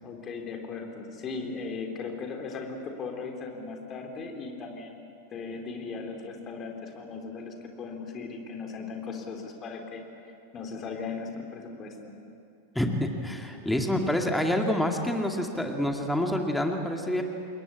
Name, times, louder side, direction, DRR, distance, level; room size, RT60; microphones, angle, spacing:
voice 1, 0.0-5.0 5.3-10.0 10.5-12.1, left 4 dB, 30° left, 3 dB, 3.9 m, -37 dB
voice 2, 12.7-17.2, left 1 dB, 5° left, 3 dB, 2.3 m, -27 dB
28.0 x 21.5 x 8.5 m, 2.6 s
figure-of-eight pair, 90°, 0 cm